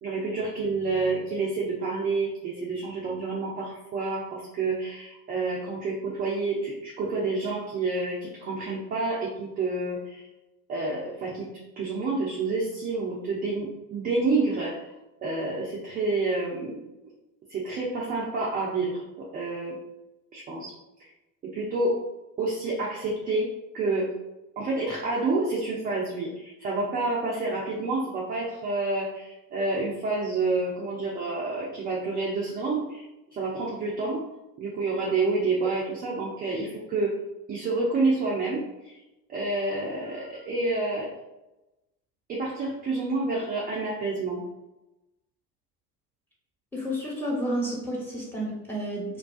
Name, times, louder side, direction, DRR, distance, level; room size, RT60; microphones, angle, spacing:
voice 1, 0.0-10.2 10.7-11.5 11.8-14.9 15.2-16.8 17.5-19.8 20.3-20.7 21.4-22.0 22.4-24.1 24.6-33.0 33.3-34.3 34.6-37.2 37.5-38.9 39.3-41.1 42.3-44.4, right 3 dB, 20° right, -4 dB, 0.3 m, -28 dB
voice 2, 46.7-49.2, equal, 5° left, -5 dB, 1.1 m, -31 dB
2.5 x 2.2 x 2.3 m, 0.96 s
figure-of-eight pair, 65°, 50 cm